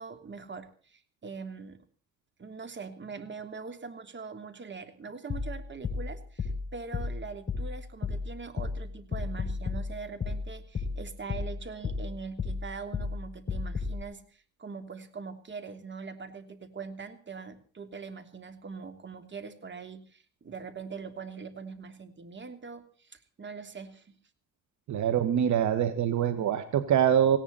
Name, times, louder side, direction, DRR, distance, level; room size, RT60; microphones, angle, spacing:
voice 1, 0.0-1.8 2.4-24.1, right 5 dB, 40° right, 9 dB, 3.1 m, -42 dB
sound 1, 5.3-14.0, left 4 dB, 35° left, 6.2 m, -34 dB
voice 2, 24.9-27.4, right 9 dB, 70° right, 10 dB, 1.7 m, -24 dB
18.5 x 17.5 x 4.2 m, 0.42 s
cardioid pair, 90°, 30 cm